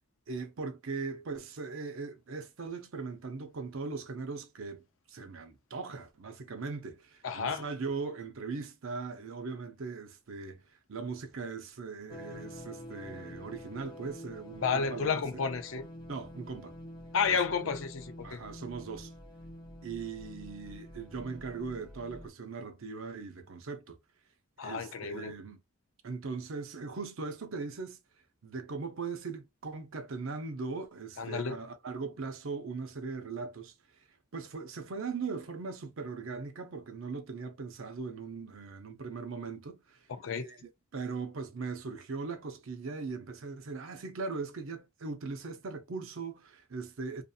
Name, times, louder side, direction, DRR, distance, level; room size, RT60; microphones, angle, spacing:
voice 1, 0.3-4.8 5.1-10.6 10.9-15.2 16.1-16.8 17.3-17.7 18.2-19.1 19.8-24.0 24.6-25.6 26.0-28.0 28.4-33.7 34.3-40.0 40.4-47.2, right 4 dB, 70° right, 0.6 m, -39 dB
voice 2, 7.2-7.7 14.6-15.9 17.1-18.4 24.6-25.3 31.2-31.6 40.1-40.5, left 5 dB, 65° left, 0.4 m, -31 dB
sound 1, 12.1-22.3, equal, 20° left, 0.5 m, -47 dB
2.7 x 2.5 x 2.3 m
head